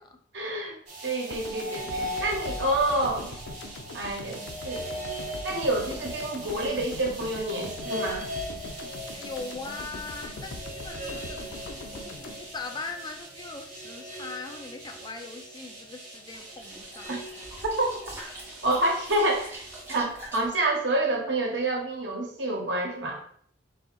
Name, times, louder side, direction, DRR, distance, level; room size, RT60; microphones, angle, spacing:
voice 1, 0.3-0.8 1.0-3.3 3.9-4.9 5.4-8.3 17.1-17.2 17.8-17.9 18.6-23.2, right 1 dB, 75° right, 0 dB, 1.2 m, -28 dB
sound 1, 0.9-20.0, equal, 45° right, 1.8 m, -39 dB
sound 2, 1.3-13.5, left 2 dB, 85° left, 0.5 m, -42 dB
voice 2, 9.1-11.4 11.9-17.2, left 3 dB, 25° left, 4 dB, 0.4 m, -40 dB
sound 3, 16.1-20.6, right 1 dB, 15° right, 1.2 m, -45 dB
4.1 x 2.8 x 3.6 m, 0.62 s
head